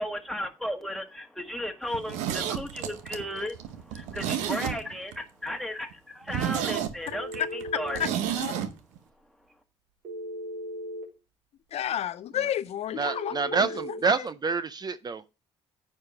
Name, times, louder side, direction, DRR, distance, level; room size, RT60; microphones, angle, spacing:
voice 1, 0.0-8.1, equal, ahead, 1.6 m, -35 dB
Zipper (clothing), 1.9-5.2 5.5-5.6 5.9-6.0 6.3-8.7 9.0-9.1, right 10 dB, 85° right, 0.8 m, -31 dB
Telephone, 7.1-8.1 10.0-11.1 13.0-14.0, equal, 65° right, 3.3 m, -37 dB
voice 2, 8.4-8.7 11.7-13.7 14.0-14.3, left 10 dB, 60° left, 0.4 m, -32 dB
voice 3, 13.0-15.3, right 5 dB, 35° right, 0.5 m, -28 dB
9.4 x 4.7 x 4.9 m
supercardioid pair, 70°, 12 cm